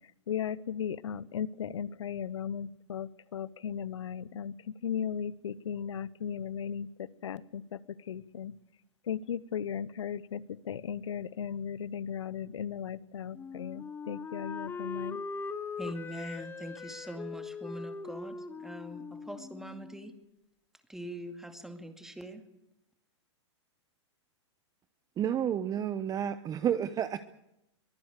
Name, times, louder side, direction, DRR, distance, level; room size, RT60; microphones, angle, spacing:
voice 1, 0.3-8.5 9.0-15.2, left 8 dB, 80° left, 20 dB, 0.9 m, -36 dB
Wind instrument woodwind instrument, 13.3-20.2, left 4 dB, 15° left, 0.7 m, -41 dB
voice 2, 15.8-20.1 20.9-22.4, right 1 dB, 5° right, 6 dB, 2.2 m, -42 dB
voice 3, 25.2-27.2, right 9 dB, 25° right, 12 dB, 0.9 m, -30 dB
23.0 x 15.0 x 8.3 m, 0.84 s
hypercardioid pair, 115°, 15 cm